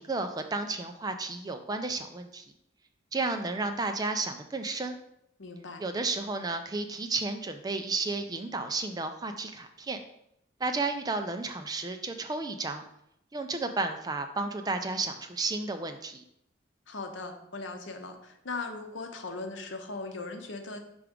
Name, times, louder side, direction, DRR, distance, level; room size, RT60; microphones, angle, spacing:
voice 1, 0.0-2.4 3.1-5.0 5.8-10.0 10.6-12.8 13.3-16.2, right 3 dB, 20° right, 6 dB, 0.4 m, -32 dB
voice 2, 5.4-5.8 16.9-20.8, left 3 dB, 75° left, 5 dB, 0.8 m, -39 dB
5.8 x 3.5 x 5.0 m, 0.78 s
head